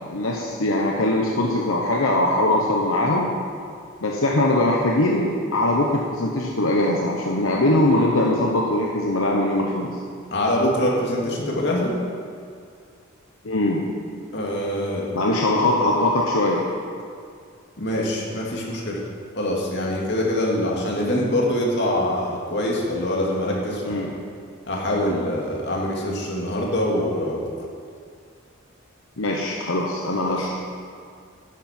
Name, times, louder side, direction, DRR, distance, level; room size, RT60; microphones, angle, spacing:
voice 1, 0.0-3.3 4.0-9.9 13.4-13.8 15.1-16.6 23.8-24.1 29.2-30.5, left 1 dB, 85° left, -2 dB, 1.1 m, -21 dB
voice 2, 10.3-11.9 14.3-15.1 17.8-19.0 19.4-24.1 24.7-27.5, left 1 dB, 55° left, -3 dB, 2.3 m, -24 dB
11.5 x 10.5 x 4.5 m, 2.2 s
head